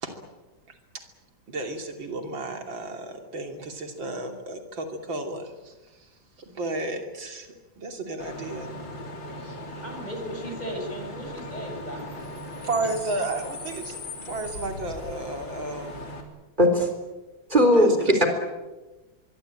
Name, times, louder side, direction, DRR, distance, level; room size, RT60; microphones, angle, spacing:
voice 1, 1.5-6.1 6.4-8.8 9.4-9.6 12.6-16.0 17.7-18.3, right 2 dB, 80° right, 4 dB, 3.6 m, -33 dB
Bus / Idling / Screech, 8.2-16.2, left 1 dB, 75° left, 4.4 m, -38 dB
voice 2, 9.8-12.9, equal, 20° left, 2 dB, 6.8 m, -37 dB
voice 3, 16.6-16.9 17.5-18.3, equal, 25° right, 4 dB, 4.1 m, -18 dB
24.0 x 23.5 x 8.9 m, 1.2 s
omnidirectional pair, 2.1 m